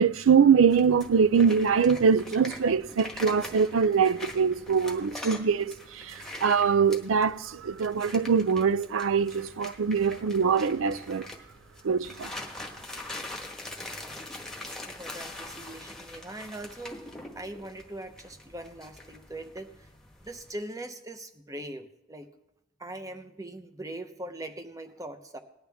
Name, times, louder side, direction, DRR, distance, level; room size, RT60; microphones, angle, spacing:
voice 1, 0.0-11.3 11.8-12.3, right 6 dB, 85° right, 0.5 m, -23 dB
sound 1, 0.7-20.5, left 1 dB, 5° left, 1.3 m, -43 dB
voice 2, 13.8-14.2 14.6-19.9 20.2-22.3 22.8-25.4, right 1 dB, 15° right, 0.8 m, -41 dB
19.0 x 11.0 x 3.5 m
head